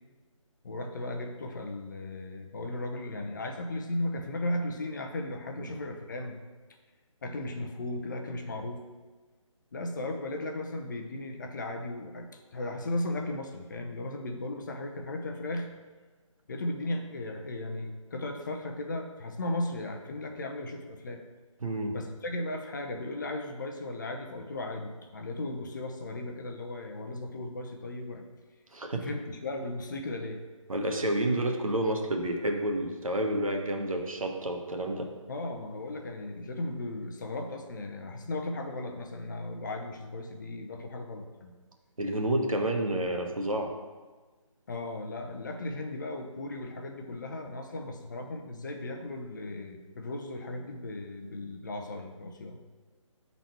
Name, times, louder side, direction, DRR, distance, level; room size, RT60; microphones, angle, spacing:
voice 1, 0.6-6.4 7.2-8.8 9.7-15.7 16.5-21.2 21.9-28.2 29.0-30.4 35.3-41.5 44.7-52.6, left 2 dB, 35° left, 3 dB, 0.7 m, -36 dB
voice 2, 21.6-22.0 28.7-29.1 30.7-35.1 42.0-43.7, right 1 dB, 85° right, 2 dB, 1.2 m, -29 dB
7.2 x 4.0 x 4.5 m, 1.3 s
figure-of-eight pair, 160°, 17 cm